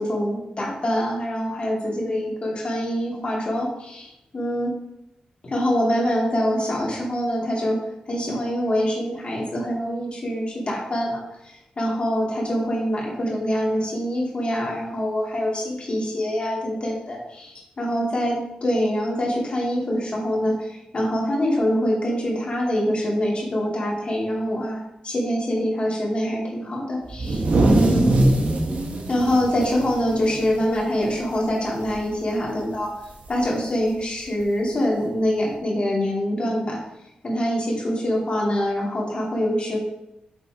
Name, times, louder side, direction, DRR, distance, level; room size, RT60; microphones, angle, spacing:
voice 1, 0.0-4.7 5.4-7.8 8.1-27.4 27.7-28.1 29.1-32.9 33.3-36.8 37.2-39.8, equal, 45° left, -3 dB, 2.6 m, -25 dB
sound 1, 27.1-30.8 31.2-31.3 31.7-32.1 33.3-33.4 34.4-34.5, right 2 dB, 60° right, 1.2 m, -21 dB
6.9 x 4.1 x 4.9 m, 0.86 s
wide cardioid pair, 95°, 3 cm